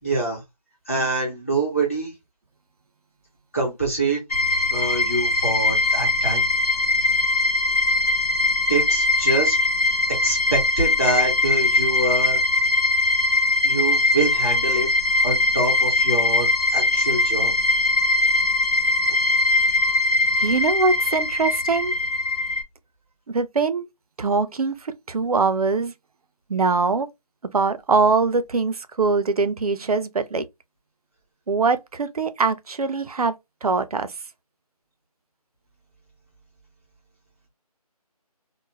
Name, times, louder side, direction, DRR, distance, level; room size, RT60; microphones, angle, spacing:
voice 1, 0.0-0.4 0.9-2.1 3.5-6.4 8.7-9.6 10.2-12.7 13.6-14.9 15.2-17.5, right 2 dB, 20° left, 0.9 m, -25 dB
sound 1, 4.3-22.6, left 2 dB, 75° left, 0.8 m, -21 dB
voice 2, 20.4-21.9 23.3-23.9 24.2-25.9 26.5-27.1 27.4-30.4 31.5-33.3 33.6-34.1, right 4 dB, 65° right, 0.4 m, -22 dB
2.3 x 2.0 x 3.0 m
figure-of-eight pair, 175°, 20 cm